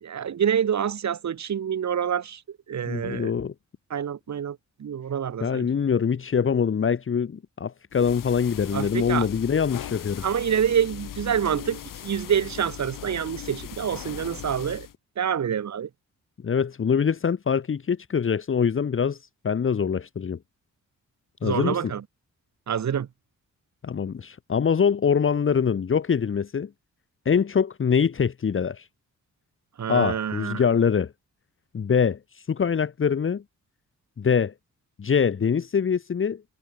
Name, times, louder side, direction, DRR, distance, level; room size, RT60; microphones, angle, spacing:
voice 1, 0.0-2.4 2.7-3.3 3.9-5.7 8.7-9.3 10.2-14.9 15.2-15.9 21.4-22.0 22.7-23.1 29.8-30.6, right 8 dB, 60° right, 3.7 m, -27 dB
voice 2, 2.9-3.5 5.4-10.3 16.4-19.2 19.4-20.4 21.4-21.9 23.8-26.7 27.3-28.9 29.9-31.1 31.7-33.4 34.2-34.5 35.0-36.4, left 6 dB, 40° left, 1.7 m, -24 dB
sound 1, 7.9-14.9, left 11 dB, 85° left, 3.6 m, -39 dB
wide cardioid pair, 135°, 32 cm